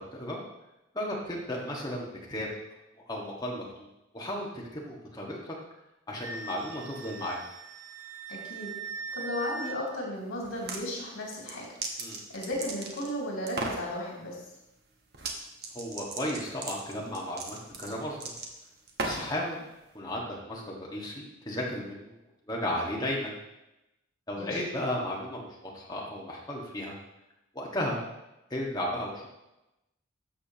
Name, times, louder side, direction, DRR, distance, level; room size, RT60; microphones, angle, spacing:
voice 1, 0.9-2.5 3.1-3.9 4.1-5.5 6.1-7.4 12.0-12.2 15.7-18.3 19.0-19.6 19.9-22.1 22.5-23.3 24.3-27.0 27.5-28.0 28.5-29.3, left 1 dB, 20° left, -3 dB, 1.7 m, -34 dB
Wind instrument woodwind instrument, 6.2-9.8, right 4 dB, 85° right, 0.9 m, -40 dB
voice 2, 8.3-8.7 9.1-11.7 12.3-14.4 24.4-24.6, left 1 dB, 75° left, -4 dB, 2.8 m, -35 dB
sound 1, 10.4-10.8 11.3-13.1 13.5-13.9 15.1-15.4 15.6-19.4, right 3 dB, 50° right, 1.1 m, -36 dB
12.5 x 6.9 x 3.0 m, 0.93 s
head